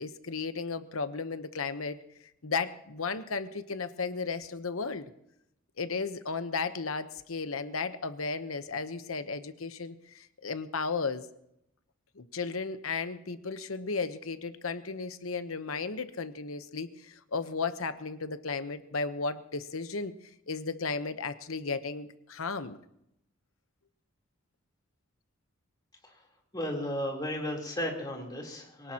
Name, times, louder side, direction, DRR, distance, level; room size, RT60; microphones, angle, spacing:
voice 1, 0.0-2.0 2.4-5.1 5.8-11.3 12.2-20.1 20.5-22.8, left 4 dB, 90° left, 10 dB, 1.0 m, -34 dB
voice 2, 26.5-28.9, equal, 20° left, -1 dB, 3.6 m, -34 dB
23.5 x 18.0 x 3.0 m, 0.80 s
head